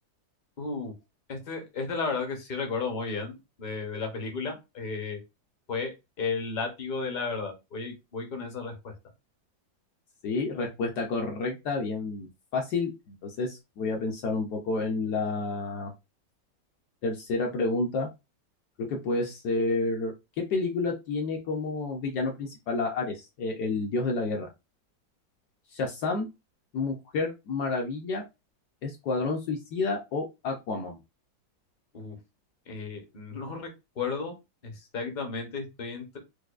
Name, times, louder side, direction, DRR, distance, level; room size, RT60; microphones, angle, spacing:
voice 1, 0.6-0.9 1.3-5.2 5.7-5.9 6.2-8.9 31.9-32.2 32.7-33.7 34.0-34.3 34.6-36.2, left 4 dB, 45° left, 3 dB, 0.6 m, -33 dB
voice 2, 10.2-15.9 17.0-18.1 18.8-24.5 25.7-26.3 26.7-28.2 28.8-31.0, left 3 dB, 70° left, 1 dB, 1.1 m, -30 dB
4.7 x 2.2 x 2.3 m, 0.24 s
omnidirectional pair, 2.0 m